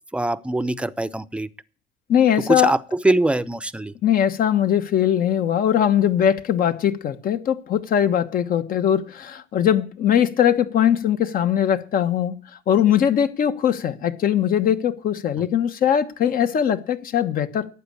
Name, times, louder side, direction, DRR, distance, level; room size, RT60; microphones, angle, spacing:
voice 1, 0.1-1.5 2.5-2.8 3.0-3.9, right 2 dB, 5° right, 0.7 m, -22 dB
voice 2, 2.1-2.7 4.0-12.4 12.7-17.7, left 9 dB, 55° left, 1.3 m, -20 dB
12.0 x 8.6 x 8.3 m
cardioid pair, 110°, 17 cm